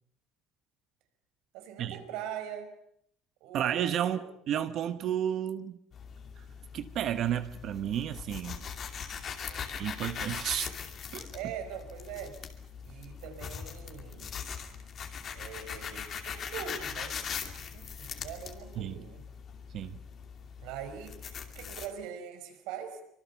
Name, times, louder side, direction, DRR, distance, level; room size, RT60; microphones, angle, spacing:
voice 1, 1.5-2.7 3.4-4.2 9.4-9.7 11.3-12.4 12.8-14.3 15.3-17.2 17.7-19.2 20.6-23.0, right 8 dB, 75° right, 7 dB, 5.4 m, -42 dB
voice 2, 3.5-4.2 4.5-5.8 6.7-8.6 9.8-10.7 11.1-11.3 18.8-19.0 19.7-20.0, right 10 dB, 40° right, 11 dB, 1.0 m, -32 dB
sound 1, 5.9-21.9, left 7 dB, 35° left, 2.6 m, -41 dB
25.0 x 25.0 x 7.0 m, 0.72 s
cardioid pair, 165°, 0 cm